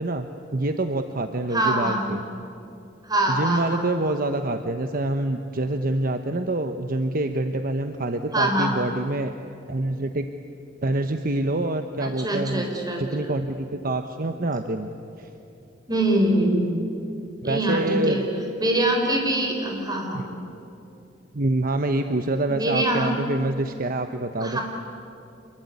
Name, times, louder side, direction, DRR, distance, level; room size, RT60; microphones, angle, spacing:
voice 1, 0.0-2.2 3.3-9.4 9.7-10.3 10.8-12.6 13.0-15.3 17.4-18.2 20.1-20.2 21.3-24.6, right 2 dB, 50° right, 7 dB, 1.0 m, -26 dB
voice 2, 1.5-2.1 3.0-4.1 8.3-8.7 12.0-13.3 15.9-16.7 17.4-18.2 18.6-20.2 22.5-23.2 24.4-24.6, right 1 dB, 20° right, 1 dB, 4.7 m, -24 dB
27.0 x 22.0 x 9.7 m, 2.7 s
head